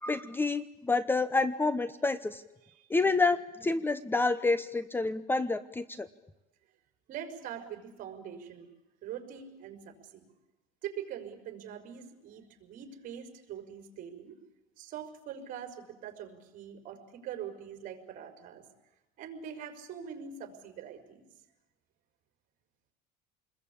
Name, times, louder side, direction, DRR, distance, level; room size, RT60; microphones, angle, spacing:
voice 1, 0.0-2.4 2.9-6.1, left 3 dB, 10° left, 15 dB, 0.9 m, -28 dB
voice 2, 7.1-8.7 9.0-10.3 10.8-14.4 14.8-18.7 19.2-21.3, right 8 dB, 50° right, 6 dB, 5.3 m, -43 dB
28.5 x 21.0 x 8.7 m, 0.97 s
cardioid pair, 130°, 17 cm